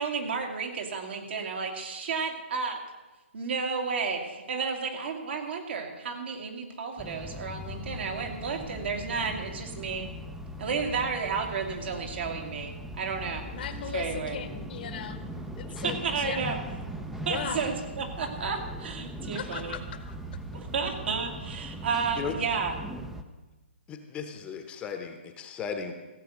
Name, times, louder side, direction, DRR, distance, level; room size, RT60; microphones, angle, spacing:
voice 1, 0.0-2.8 3.3-10.1 10.6-13.5 13.9-14.4 15.8-16.6 17.3-19.8 20.5-22.7, right 5 dB, 60° right, 3 dB, 2.3 m, -32 dB
sound 1, 7.0-23.2, right 1 dB, 5° right, 0.6 m, -40 dB
voice 2, 13.5-15.2 15.5-16.7 17.3-17.6 19.3-20.2, left 8 dB, 50° left, 10 dB, 1.1 m, -38 dB
voice 3, 23.9-25.9, left 6 dB, 15° left, 6 dB, 1.0 m, -36 dB
15.5 x 7.9 x 6.4 m, 1.2 s
hypercardioid pair, 145°, 7 cm